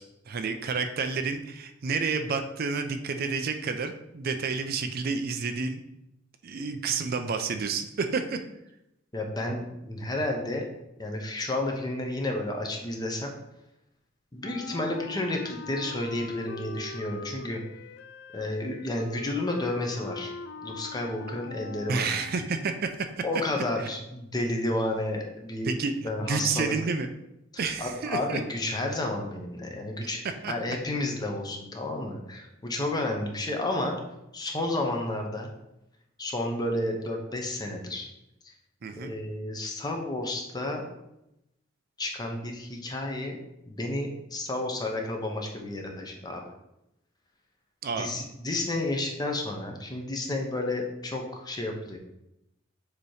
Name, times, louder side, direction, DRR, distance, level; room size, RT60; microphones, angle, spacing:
voice 1, 0.0-5.8 6.4-8.4 21.9-23.1 23.8-23.9 25.6-27.1 27.6-28.4 30.4-30.5 38.8-39.1 47.8-48.1, right 4 dB, 50° right, 7 dB, 0.4 m, -30 dB
voice 2, 9.1-10.6 11.0-13.3 14.3-17.6 18.3-20.3 20.6-22.1 23.2-25.7 26.0-26.7 27.8-34.0 34.3-35.5 36.2-38.1 39.0-40.8 42.0-43.4 43.7-46.4 48.0-52.0, left 1 dB, 20° left, 2 dB, 0.8 m, -31 dB
Wind instrument woodwind instrument, 14.4-22.7, left 4 dB, 60° left, 0.3 m, -42 dB
6.7 x 3.0 x 4.8 m, 0.87 s
head